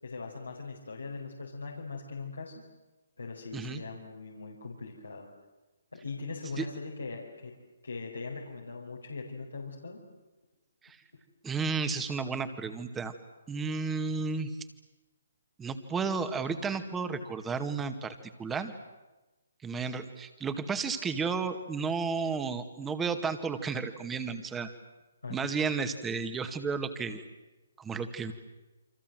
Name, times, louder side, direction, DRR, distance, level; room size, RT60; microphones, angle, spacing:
voice 1, 0.0-2.6 3.2-5.3 5.9-7.5 7.8-10.0 25.2-25.5, left 4 dB, 90° left, -2 dB, 5.1 m, -40 dB
voice 2, 11.4-13.1 13.5-14.5 15.6-18.7 19.6-24.7 25.3-27.2 27.8-28.3, right 5 dB, 10° right, 9 dB, 2.1 m, -32 dB
29.0 x 25.0 x 7.9 m, 1.1 s
figure-of-eight pair, 140°, 0 cm